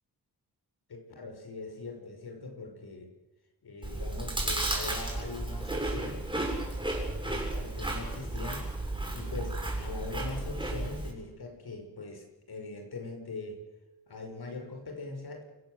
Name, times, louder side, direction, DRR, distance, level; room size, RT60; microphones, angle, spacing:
voice 1, 0.9-3.1 3.6-6.2 7.2-8.7 9.1-13.6 14.1-15.4, left 3 dB, 65° left, 4 dB, 5.7 m, -41 dB
Chewing mastication, 3.8-11.1, right 2 dB, 10° right, 7.6 m, -33 dB
28.0 x 15.5 x 8.0 m, 1.1 s
wide cardioid pair, 95°, 40 cm